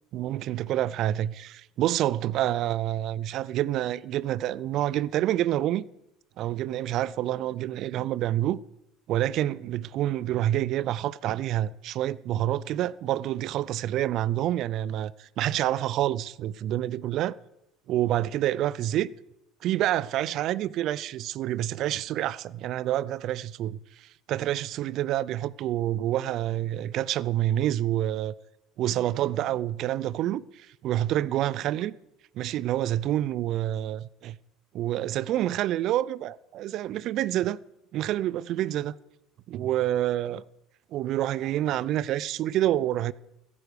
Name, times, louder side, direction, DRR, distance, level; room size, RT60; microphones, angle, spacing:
voice 1, 0.1-5.8 6.4-8.6 9.1-17.4 17.9-19.1 19.6-28.3 28.8-32.0 32.4-34.4 34.7-37.6 37.9-38.9 39.5-40.4 40.9-43.1, right 13 dB, 55° right, 0.4 m, -28 dB
14.0 x 10.5 x 6.7 m
hypercardioid pair, 75°, 0 cm